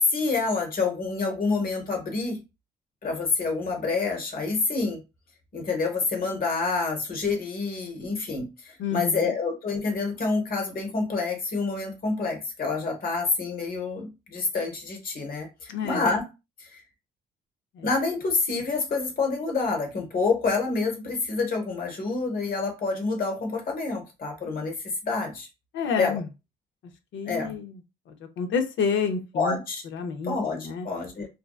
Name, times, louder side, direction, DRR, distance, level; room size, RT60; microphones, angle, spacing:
voice 1, 0.1-2.4 3.0-5.0 5.5-16.2 16.6-16.8 17.8-25.5 26.0-26.2 27.2-27.5 29.3-29.8 30.2-31.3, left 4 dB, 45° left, 3 dB, 1.1 m, -28 dB
voice 2, 8.8-9.3 15.7-16.1 17.7-17.9 25.7-26.3 27.1-27.8 28.1-29.6 29.9-30.9, left 5 dB, 70° left, 6 dB, 0.6 m, -29 dB
2.6 x 2.2 x 2.3 m, 0.27 s
cardioid pair, 90°, 20 cm